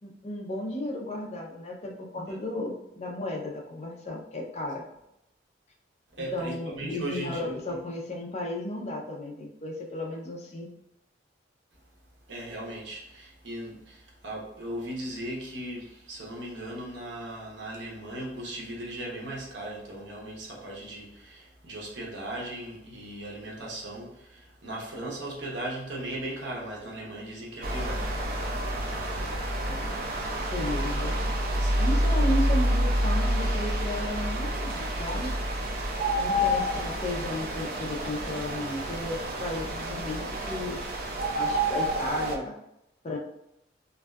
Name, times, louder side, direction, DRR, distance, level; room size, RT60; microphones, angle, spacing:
voice 1, 0.0-4.8 6.3-10.7 29.7-30.0 30.5-31.2 31.8-35.3 36.1-40.8 41.3-42.5 43.0-43.2, left 1 dB, 35° left, 0 dB, 0.4 m, -34 dB
voice 2, 6.1-7.8 12.3-28.1 31.6-31.8 35.3-35.5, right 1 dB, 75° right, -3 dB, 0.8 m, -38 dB
sound 1, 27.6-42.4, equal, 50° right, 0.4 m, -28 dB
2.6 x 2.2 x 2.2 m, 0.81 s
head